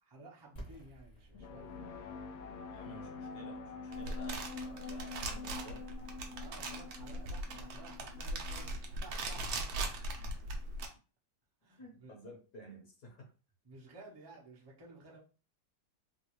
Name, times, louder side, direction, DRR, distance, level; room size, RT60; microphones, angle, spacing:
voice 1, 0.1-1.8 6.4-9.9 11.6-12.1 13.6-15.2, right 2 dB, 30° right, -3 dB, 0.4 m, -54 dB
sound 1, 0.5-6.3, right 1 dB, 30° left, 0.8 m, -56 dB
sound 2, 1.3-8.9, left 4 dB, 90° left, 0.7 m, -46 dB
voice 2, 2.7-5.9 11.8-13.3, equal, 60° left, 0 dB, 1.5 m, -53 dB
sound 3, 3.9-10.9, right 2 dB, 65° right, 1.0 m, -40 dB
3.7 x 2.4 x 3.0 m, 0.34 s
omnidirectional pair, 2.1 m